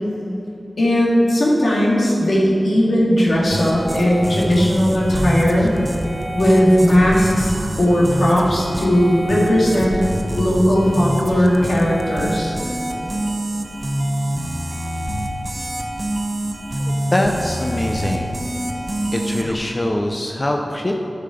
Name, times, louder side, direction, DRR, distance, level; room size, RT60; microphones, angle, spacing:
voice 1, 0.8-5.7 6.3-10.0 10.4-12.5, equal, 85° left, -5 dB, 2.0 m, -17 dB
sound 1, 3.5-19.6, right 1 dB, 40° right, 0.9 m, -26 dB
voice 2, 17.1-18.3 19.1-20.9, left 1 dB, 30° left, 2 dB, 0.6 m, -23 dB
9.3 x 5.8 x 5.0 m, 2.9 s
wide cardioid pair, 70°, 0 cm